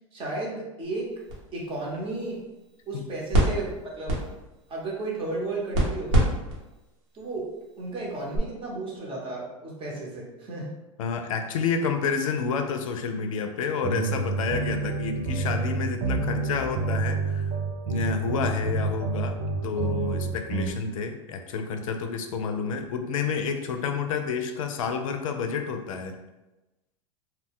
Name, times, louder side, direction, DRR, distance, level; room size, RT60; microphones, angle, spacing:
voice 1, 0.1-1.1 1.5-2.4 2.9-4.2 4.7-6.3 7.1-10.7, right 2 dB, 30° right, -3 dB, 1.0 m, -33 dB
sound 1, 0.8-8.4, right 1 dB, 70° right, 1.1 m, -30 dB
voice 2, 11.0-17.5 17.9-19.3 19.6-26.2, left 5 dB, 85° left, 6 dB, 0.4 m, -29 dB
sound 2, 13.8-20.7, right 4 dB, 50° right, 0.4 m, -29 dB
2.3 x 2.2 x 3.5 m, 1.0 s
hypercardioid pair, 110°, 17 cm